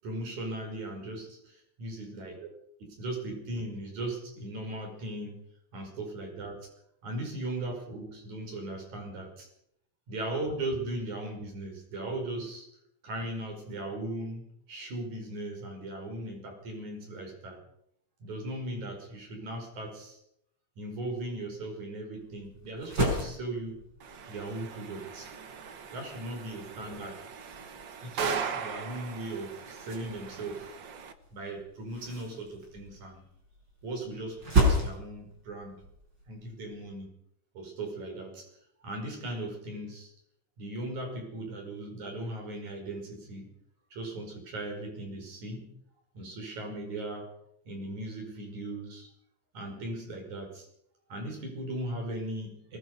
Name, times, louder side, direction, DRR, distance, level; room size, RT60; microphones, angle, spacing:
voice 1, 0.0-2.5 2.8-5.5 5.7-6.6 7.0-9.5 10.1-12.7 13.0-17.6 18.2-20.2 20.8-23.8 24.3-25.3 25.9-27.2 28.0-30.7 31.3-33.2 33.8-35.8 36.3-37.2 37.5-38.5 38.8-40.1 40.6-43.5 43.9-45.7 46.1-47.3 47.6-49.1 49.5-50.7 51.1-52.8, right 1 dB, 55° right, 2 dB, 7.0 m, -38 dB
sound 1, 22.1-36.9, right 1 dB, 30° right, 6.6 m, -35 dB
sound 2, 24.0-31.1, right 6 dB, 75° right, 1.0 m, -39 dB
22.0 x 21.5 x 5.5 m, 0.75 s
omnidirectional pair, 4.2 m